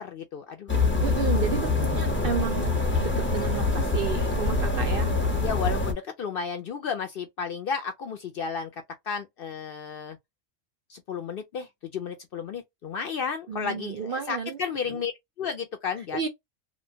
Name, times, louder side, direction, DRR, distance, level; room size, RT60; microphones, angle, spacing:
voice 1, 0.0-0.8 5.4-8.7 9.1-10.2 10.9-15.1 15.4-16.2, left 6 dB, 60° left, 0.6 m, -33 dB
sound 1, 0.7-5.9, left 3 dB, 15° left, 0.5 m, -25 dB
voice 2, 1.0-5.1 13.5-14.6 14.9-15.0 16.1-16.3, right 7 dB, 60° right, 0.6 m, -32 dB
3.0 x 2.1 x 2.6 m
omnidirectional pair, 1.3 m